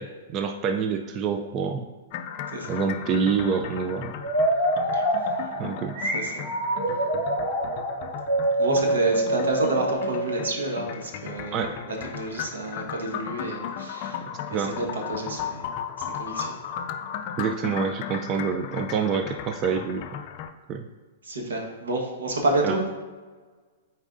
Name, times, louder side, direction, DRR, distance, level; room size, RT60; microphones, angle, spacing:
voice 1, 0.0-1.9 2.7-4.1 5.6-6.0 11.5-11.8 14.5-14.7 17.4-20.0 20.7-20.9 22.6-22.8, right 6 dB, 30° right, 6 dB, 0.4 m, -27 dB
sound 1, 2.1-20.5, left 8 dB, 45° left, 0.4 m, -36 dB
sound 2, 4.2-10.9, right 1 dB, 50° right, 1.3 m, -26 dB
voice 2, 6.1-6.5 8.6-14.2 14.5-15.7 16.2-16.5 21.2-22.8, right 2 dB, 90° right, 0 dB, 1.3 m, -29 dB
8.9 x 4.1 x 2.6 m, 1.4 s
hypercardioid pair, 140°, 0 cm